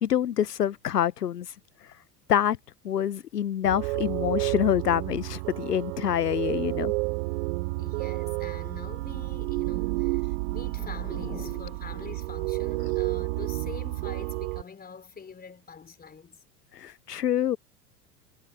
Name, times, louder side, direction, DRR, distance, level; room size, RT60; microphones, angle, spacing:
voice 1, 0.0-1.5 2.3-2.6 2.8-6.9 11.3-11.4 16.7-17.6, left 10 dB, 75° left, 0.8 m, -26 dB
sound 1, 3.6-14.6, right 25 dB, 50° right, 0.9 m, -30 dB
voice 2, 7.8-10.2 10.5-16.4, left 6 dB, 20° left, 3.7 m, -44 dB
figure-of-eight pair, 75°, 48 cm